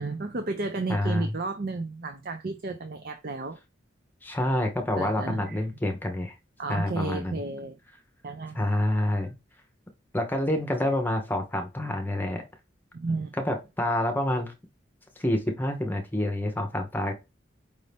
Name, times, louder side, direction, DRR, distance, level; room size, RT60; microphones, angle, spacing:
voice 1, 0.0-3.6 5.0-5.6 6.6-7.8 8.2-8.6 12.9-13.3, right 3 dB, 50° right, 0.5 m, -32 dB
voice 2, 0.9-1.3 4.2-6.3 6.7-7.4 8.5-9.3 10.1-12.4 13.4-14.5 15.2-17.1, left 1 dB, 10° left, 0.8 m, -27 dB
5.2 x 2.7 x 3.3 m
head